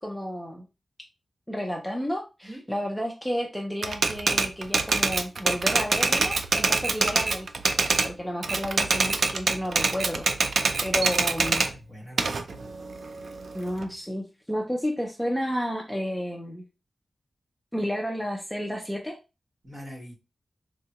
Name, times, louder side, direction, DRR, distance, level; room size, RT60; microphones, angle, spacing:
voice 1, 0.0-0.7 1.5-7.5 8.0-10.3 10.8-11.6 13.5-16.6 17.7-19.2, equal, 5° left, 0 dB, 0.5 m, -31 dB
Typewriter, 3.8-8.1 8.4-11.7 12.2-13.8, right 4 dB, 65° right, 0.4 m, -24 dB
voice 2, 11.7-12.7 19.6-20.1, equal, 45° right, -4 dB, 1.3 m, -43 dB
3.6 x 2.2 x 2.8 m, 0.29 s
wide cardioid pair, 140°, 0 cm